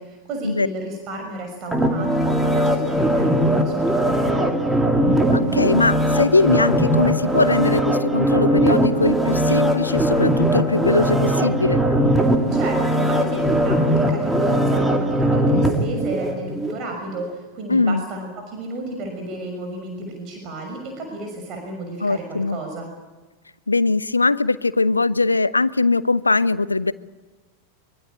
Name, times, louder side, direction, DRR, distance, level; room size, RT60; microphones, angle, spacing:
voice 1, 0.0-4.6 12.5-22.9, right 2 dB, 35° right, 3 dB, 6.2 m, -32 dB
sound 1, 1.7-16.8 17.2-17.3, right 1 dB, 5° right, 2.6 m, -20 dB
voice 2, 5.3-11.8 17.7-18.0 22.0-22.6 23.7-26.9, left 3 dB, 80° left, 18 dB, 0.8 m, -21 dB
24.0 x 23.5 x 8.8 m, 1.2 s
figure-of-eight pair, 90°, 0 cm